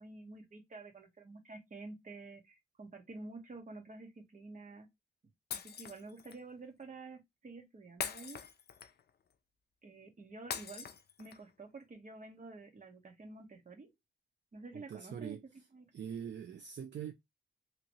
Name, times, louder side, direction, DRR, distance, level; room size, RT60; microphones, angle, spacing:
voice 1, 0.0-4.9 5.5-8.4 9.8-10.9 11.2-13.9 14.5-15.4 15.7-15.9, right 3 dB, 40° right, 1.0 m, -50 dB
Shatter, 5.5-6.4 8.0-9.1 10.5-11.5, left 7 dB, 55° left, 0.4 m, -42 dB
voice 2, 14.7-15.4 15.9-17.1, right 8 dB, 65° right, 0.4 m, -43 dB
2.9 x 2.8 x 2.7 m
wide cardioid pair, 110°, 20 cm